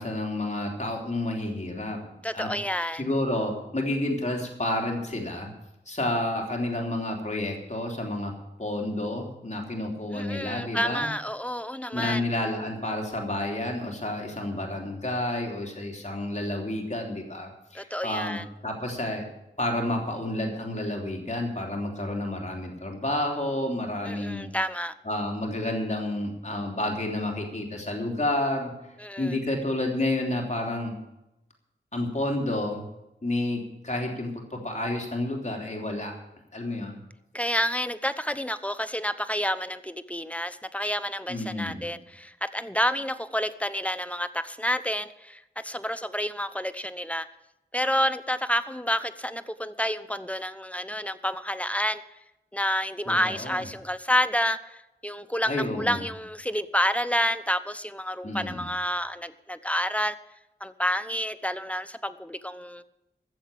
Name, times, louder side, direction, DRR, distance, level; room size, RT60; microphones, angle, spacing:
voice 1, 0.0-2.0 2.3-2.5 3.0-5.5 5.9-8.3 8.6-11.1 11.9-18.4 18.6-19.2 19.6-24.5 25.0-28.7 29.2-30.9 31.9-32.9 33.2-36.1 36.5-36.9 41.3-41.9 53.1-53.6 55.5-56.0 58.2-58.6, left 1 dB, 40° left, 1 dB, 3.2 m, -30 dB
voice 2, 2.2-3.1 10.1-12.2 17.7-18.4 24.0-24.9 29.0-29.4 37.3-47.3 47.7-52.0 52.5-60.2 60.6-62.8, equal, 5° left, 12 dB, 0.9 m, -29 dB
14.5 x 7.4 x 8.5 m, 0.91 s
cardioid pair, 45°, 19 cm